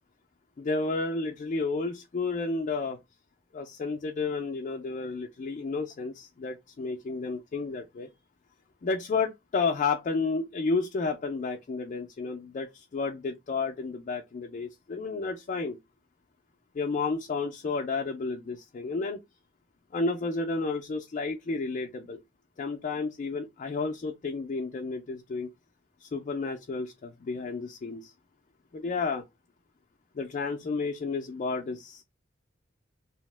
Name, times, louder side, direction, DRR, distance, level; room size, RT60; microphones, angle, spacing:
voice 1, 0.6-3.0 3.5-8.1 8.8-15.8 16.7-19.2 19.9-22.2 22.6-25.5 26.0-28.1 28.7-29.2 30.1-32.0, left 4 dB, 40° left, 0.4 m, -31 dB
2.8 x 2.0 x 3.1 m
head